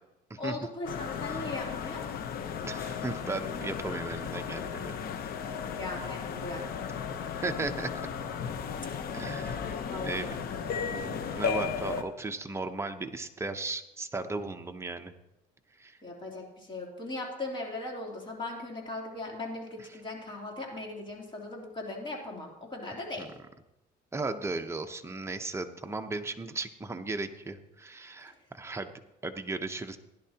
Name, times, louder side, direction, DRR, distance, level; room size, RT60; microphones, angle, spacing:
voice 1, 0.4-2.1 5.7-6.6 9.9-10.6 16.0-23.3, left 2 dB, 30° left, -1 dB, 3.3 m, -38 dB
sound 1, 0.8-12.0, left 7 dB, 60° left, 1.0 m, -35 dB
voice 2, 2.6-5.0 7.4-7.9 9.1-9.7 10.0-10.3 10.9-15.1 15.8-16.0 19.9-20.0 23.2-23.3 24.1-28.9 29.2-30.0, right 3 dB, 15° right, 6 dB, 0.9 m, -36 dB
16.0 x 11.0 x 2.9 m, 0.94 s
cardioid pair, 110°, 17 cm